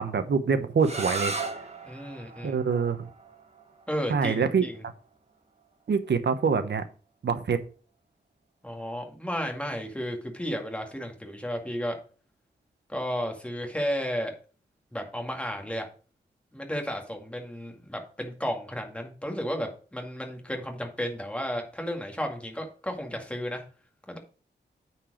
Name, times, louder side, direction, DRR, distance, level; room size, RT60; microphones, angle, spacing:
voice 1, 0.0-1.3 2.4-3.1 4.1-4.6 5.9-6.8 7.2-7.6, right 5 dB, 70° right, 9 dB, 1.1 m, -25 dB
sound 1, 0.8-6.5, right 3 dB, 35° right, 1.3 m, -38 dB
voice 2, 1.8-2.6 3.9-4.7 8.6-12.0 12.9-14.3 14.9-15.9 16.5-23.6 24.1-24.2, equal, 5° left, 2 dB, 2.1 m, -33 dB
9.0 x 4.6 x 4.9 m, 0.38 s
wide cardioid pair, 100°, 18 cm